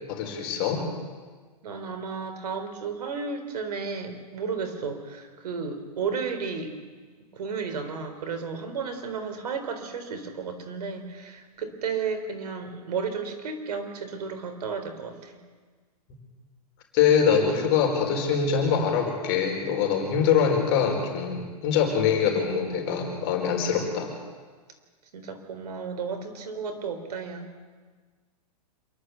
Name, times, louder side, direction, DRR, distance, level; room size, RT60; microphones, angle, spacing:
voice 1, 0.1-0.9 16.9-24.1, left 7 dB, 40° left, 1 dB, 4.6 m, -24 dB
voice 2, 1.6-6.7 7.3-15.4 25.1-27.5, right 5 dB, 75° right, 7 dB, 3.8 m, -33 dB
27.0 x 12.0 x 8.3 m, 1.5 s
hypercardioid pair, 140°, 20 cm